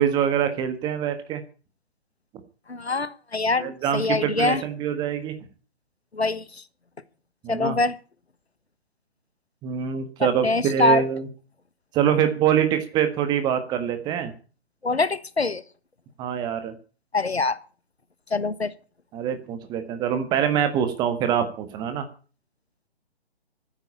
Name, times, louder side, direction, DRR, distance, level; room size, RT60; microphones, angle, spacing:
voice 1, 0.0-1.4 3.6-5.3 7.4-7.8 9.6-11.3 11.9-14.3 16.2-16.7 19.1-22.0, right 9 dB, 15° right, 9 dB, 1.4 m, -24 dB
voice 2, 2.7-4.6 6.1-6.6 7.5-8.0 10.2-11.0 14.8-15.6 17.1-17.6 18.3-18.7, left 3 dB, 75° left, 15 dB, 1.5 m, -24 dB
14.5 x 9.9 x 8.7 m, 0.39 s
figure-of-eight pair, 135°, 32 cm